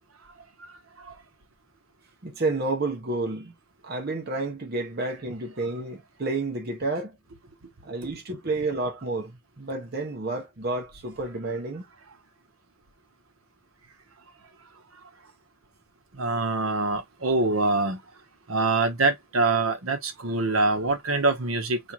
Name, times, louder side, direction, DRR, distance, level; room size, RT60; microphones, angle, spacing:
voice 1, 2.2-3.5 3.8-7.2 7.8-11.8, right 2 dB, 45° right, 0.9 m, -30 dB
voice 2, 16.2-18.0 18.5-21.9, right 3 dB, 80° right, 1.0 m, -24 dB
4.5 x 2.3 x 3.0 m
head